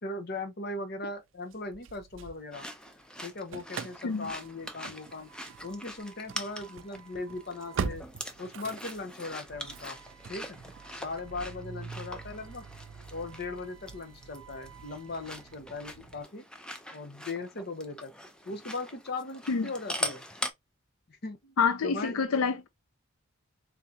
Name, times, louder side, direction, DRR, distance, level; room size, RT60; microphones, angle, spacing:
voice 1, 0.0-2.7 3.2-5.3 5.6-8.0 8.4-10.0 10.3-10.6 10.9-12.6 13.1-16.4 16.9-18.1 18.5-20.2 21.1-21.6 21.8-22.3, left 3 dB, 50° left, 0.8 m, -38 dB
Engine starting / Slam, 1.5-2.9 3.2-16.2, right 6 dB, 65° right, 0.4 m, -43 dB
sound 1, 2.5-20.5, left 1 dB, 5° left, 0.4 m, -43 dB
voice 2, 21.6-22.7, left 5 dB, 90° left, 0.5 m, -27 dB
3.6 x 3.3 x 2.7 m
head